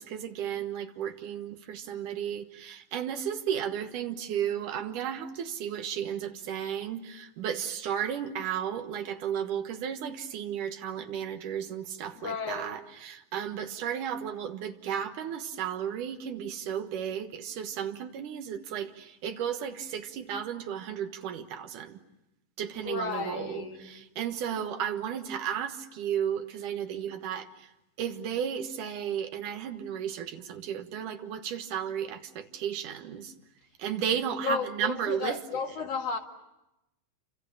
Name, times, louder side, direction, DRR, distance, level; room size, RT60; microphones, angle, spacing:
voice 1, 0.0-22.0 22.6-27.7 28.0-33.3 33.8-35.4, right 9 dB, 70° right, 2.9 m, -34 dB
voice 2, 12.1-12.7 22.8-23.9 34.4-36.2, left 5 dB, 50° left, 2.9 m, -33 dB
28.5 x 26.0 x 7.2 m
omnidirectional pair, 4.0 m